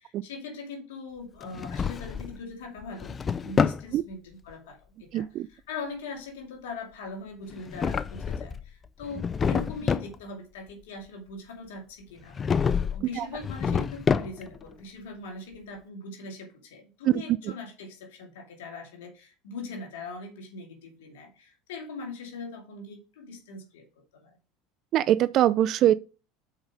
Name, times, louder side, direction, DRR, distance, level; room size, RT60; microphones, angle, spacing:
voice 1, 0.0-3.1 3.4-23.9 24.1-24.4, left 3 dB, 85° left, 2.2 m, -41 dB
Drawer open or close, 1.4-2.4 2.8-3.9 7.5-8.6 9.0-10.1 12.3-13.0 13.4-14.6, left 6 dB, 30° left, 0.5 m, -27 dB
voice 2, 5.1-5.5 13.2-13.3 17.1-17.2 24.9-25.9, right 12 dB, 50° right, 0.3 m, -22 dB
6.4 x 4.8 x 5.1 m
hypercardioid pair, 95°, 0 cm